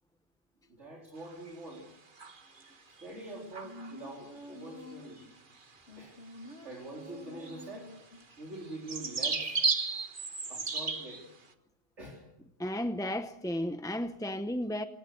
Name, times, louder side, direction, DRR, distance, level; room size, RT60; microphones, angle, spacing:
voice 1, 0.7-1.9 2.9-5.3 6.0-6.2 6.6-7.9 8.4-9.6 10.5-11.3 12.0-12.2, right 2 dB, 60° right, 4.3 m, -45 dB
sound 1, 1.3-1.8 2.2-2.7 3.0-3.1 3.5-4.0 5.0-5.2 5.5-5.6 6.4-6.5 6.8-6.9 7.4-11.3, right 4 dB, 40° right, 1.6 m, -34 dB
sound 2, 3.4-5.3 5.9-8.3 8.6-8.7, left 1 dB, 55° left, 2.8 m, -48 dB
voice 2, 12.6-14.9, left 1 dB, 5° left, 0.5 m, -33 dB
26.5 x 18.0 x 6.6 m
omnidirectional pair, 1.4 m